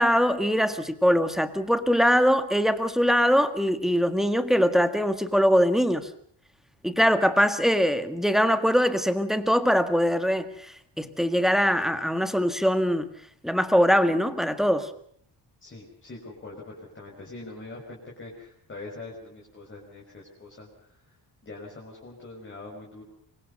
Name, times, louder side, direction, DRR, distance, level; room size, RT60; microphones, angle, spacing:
voice 1, 0.0-6.1 6.8-10.5 11.0-13.1 13.4-14.9, equal, ahead, 9 dB, 1.7 m, -22 dB
voice 2, 15.6-21.2 21.4-23.0, left 2 dB, 25° left, -1 dB, 5.6 m, -43 dB
25.5 x 23.5 x 5.5 m, 0.65 s
wide cardioid pair, 155°, 45 cm